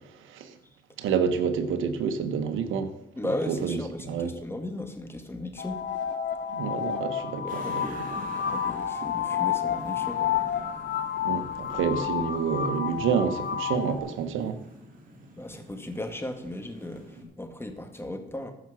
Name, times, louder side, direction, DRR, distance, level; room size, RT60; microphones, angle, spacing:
voice 1, 0.2-0.5 1.0-2.9 3.5-3.8 4.1-4.3 6.5-7.9 11.2-14.6, right 6 dB, 85° right, 1.3 m, -28 dB
voice 2, 3.2-5.8 7.4-10.7 15.4-18.5, left 1 dB, 10° left, 1.8 m, -36 dB
sound 1, 5.6-14.0, left 8 dB, 60° left, 2.1 m, -30 dB
sound 2, 7.5-17.2, right 1 dB, 45° right, 3.1 m, -47 dB
14.5 x 6.1 x 6.3 m
cardioid pair, 90°, 20 cm